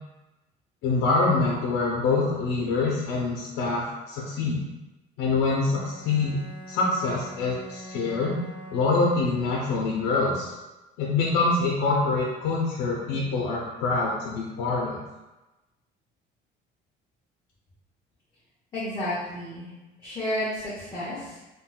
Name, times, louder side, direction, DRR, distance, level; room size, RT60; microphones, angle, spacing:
voice 1, 0.8-4.6 5.2-6.4 6.7-8.4 8.7-10.5 11.0-15.0, left 3 dB, 85° left, -4 dB, 0.6 m, -25 dB
Bowed string instrument, 5.5-10.0, equal, 65° left, 1.5 m, -44 dB
voice 2, 18.7-19.7 20.0-21.4, left 1 dB, 20° left, -10 dB, 0.7 m, -31 dB
3.8 x 2.2 x 2.2 m, 1.1 s
cardioid pair, 170°, 18 cm